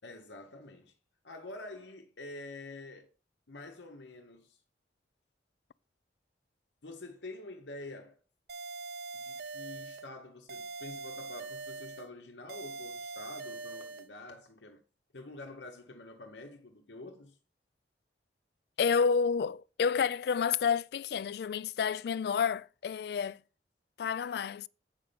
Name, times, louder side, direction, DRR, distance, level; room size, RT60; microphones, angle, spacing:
voice 1, 0.0-0.9 1.2-3.1 3.5-4.6 6.8-8.2 9.1-14.8 15.1-17.4, left 2 dB, 90° left, 1.1 m, -47 dB
sound 1, 8.5-10.1 10.5-12.1 12.5-14.1, right 4 dB, 60° right, 0.7 m, -42 dB
voice 2, 18.8-23.4 24.0-24.7, left 6 dB, 60° left, 0.3 m, -29 dB
8.1 x 5.5 x 5.2 m
head